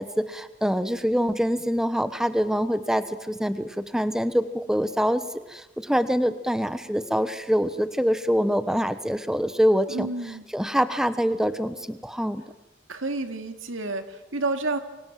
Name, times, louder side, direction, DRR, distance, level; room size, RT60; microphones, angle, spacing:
voice 1, 0.0-10.1 10.5-12.4, equal, 5° right, 12 dB, 1.0 m, -25 dB
voice 2, 9.9-10.5 12.9-14.8, right 2 dB, 80° right, 7 dB, 2.6 m, -30 dB
28.5 x 25.0 x 7.6 m, 1.0 s
head